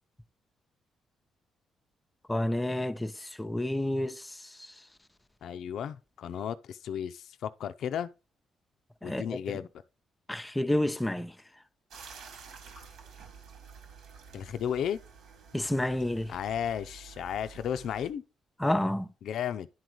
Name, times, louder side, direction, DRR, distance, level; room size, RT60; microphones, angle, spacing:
voice 1, 2.3-4.2 9.0-9.6 10.3-11.3 15.5-16.3 18.6-19.1, left 1 dB, 10° left, 0.8 m, -29 dB
voice 2, 5.4-8.1 9.0-9.7 14.3-15.0 16.3-18.2 19.2-19.7, left 9 dB, 70° left, 0.6 m, -34 dB
sound 1, 11.9-18.1, right 6 dB, 75° right, 2.3 m, -50 dB
11.0 x 4.0 x 4.6 m
cardioid pair, 90°, 0 cm